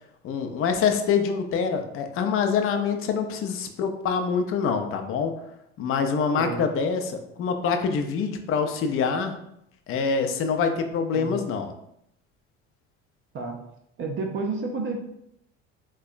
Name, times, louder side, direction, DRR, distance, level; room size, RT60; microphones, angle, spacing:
voice 1, 0.2-5.3 5.8-9.4 9.9-11.7, left 6 dB, 40° left, 6 dB, 0.5 m, -25 dB
voice 2, 14.0-15.0, right 3 dB, 35° right, 1 dB, 0.5 m, -30 dB
3.4 x 2.2 x 2.4 m, 0.76 s
hypercardioid pair, 70°, 34 cm